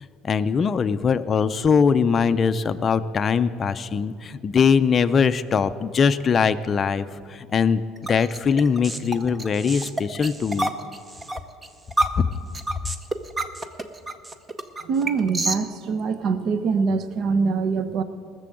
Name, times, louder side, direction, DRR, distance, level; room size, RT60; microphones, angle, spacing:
voice 1, 0.2-7.0 7.3-7.8 8.1-10.7 12.2-12.3, left 6 dB, 25° left, 11 dB, 0.4 m, -21 dB
sound 1, 8.0-15.6, right 2 dB, 15° right, 0.6 m, -28 dB
voice 2, 14.8-18.0, right 5 dB, 50° right, 12 dB, 0.8 m, -24 dB
18.5 x 6.9 x 7.7 m, 2.3 s
cardioid pair, 155°, 0 cm